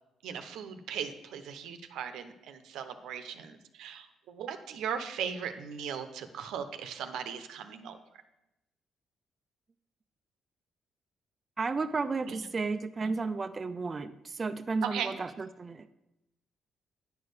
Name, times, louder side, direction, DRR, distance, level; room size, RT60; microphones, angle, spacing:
voice 1, 0.2-8.0 12.3-12.5 13.0-13.1 14.8-15.1, right 8 dB, 85° right, 9 dB, 0.8 m, -38 dB
voice 2, 11.6-15.9, right 4 dB, 30° right, 10 dB, 0.5 m, -33 dB
9.6 x 4.7 x 6.8 m, 0.90 s
cardioid pair, 90°, 0 cm